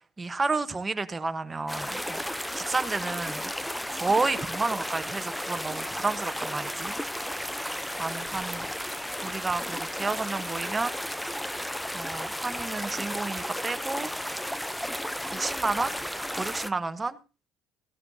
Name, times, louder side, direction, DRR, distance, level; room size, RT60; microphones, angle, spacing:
voice 1, 0.2-2.2 2.5-3.5 3.9-6.9 8.0-8.7 9.2-11.3 11.9-14.1 15.3-16.0 16.4-17.2, right 3 dB, 20° right, 10 dB, 1.0 m, -31 dB
sound 1, 1.7-16.7, equal, 5° left, 0.6 m, -33 dB
15.5 x 12.5 x 2.7 m, 0.31 s
supercardioid pair, 85°, 0 cm